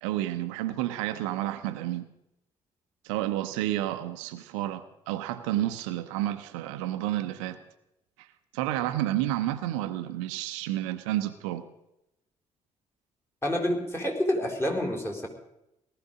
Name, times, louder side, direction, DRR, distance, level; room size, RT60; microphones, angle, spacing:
voice 1, 0.0-2.1 3.0-7.6 8.2-8.3 8.5-11.6, right 14 dB, 70° right, 10 dB, 0.8 m, -30 dB
voice 2, 13.4-15.3, left 1 dB, 15° left, 3 dB, 4.2 m, -28 dB
18.5 x 13.0 x 5.1 m, 0.85 s
figure-of-eight pair, 45°, 17 cm